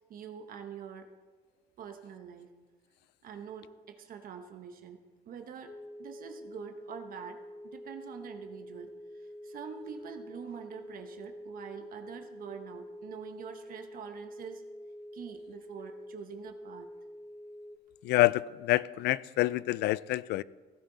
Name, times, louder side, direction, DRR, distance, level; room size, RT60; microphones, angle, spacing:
voice 1, 0.1-1.1 1.8-2.5 3.2-5.0 5.3-5.7 6.0-14.6 15.1-16.9, right 7 dB, 55° right, 5 dB, 1.1 m, -45 dB
sound 1, 5.7-17.8, equal, 25° left, 0.7 m, -47 dB
voice 2, 18.0-20.4, left 17 dB, 75° left, 20 dB, 0.4 m, -27 dB
16.0 x 11.0 x 4.0 m, 1.3 s
cardioid pair, 110°, 17 cm